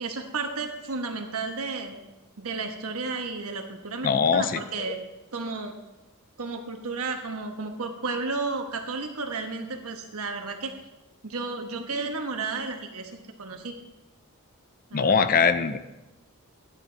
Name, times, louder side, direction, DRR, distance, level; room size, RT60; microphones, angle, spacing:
voice 1, 0.0-1.9 2.4-5.0 5.3-5.8 6.4-10.7 11.2-13.7 14.9-15.3, right 3 dB, 80° right, 4 dB, 1.2 m, -33 dB
voice 2, 4.0-4.9 14.9-15.8, left 5 dB, 40° left, 12 dB, 0.5 m, -22 dB
12.5 x 9.1 x 3.4 m, 1.1 s
head